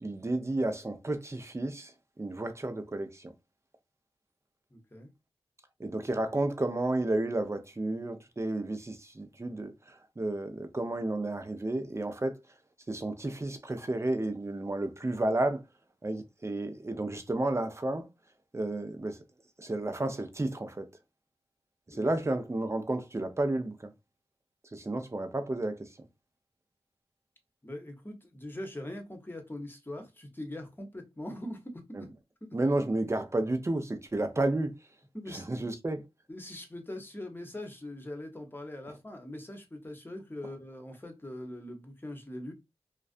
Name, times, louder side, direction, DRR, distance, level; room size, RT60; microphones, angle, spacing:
voice 1, 0.0-3.3 5.8-9.7 10.2-12.4 12.9-15.6 16.0-18.1 18.5-19.2 19.6-20.8 21.9-23.9 24.7-25.9 31.9-32.0 32.5-34.7 35.3-36.0, right 2 dB, 25° right, 0.5 m, -31 dB
voice 2, 4.7-5.1 21.9-22.1 27.6-32.1 35.1-35.6 36.3-42.5, left 1 dB, 20° left, 0.9 m, -42 dB
2.4 x 2.1 x 2.4 m
cardioid pair, 45°, 11 cm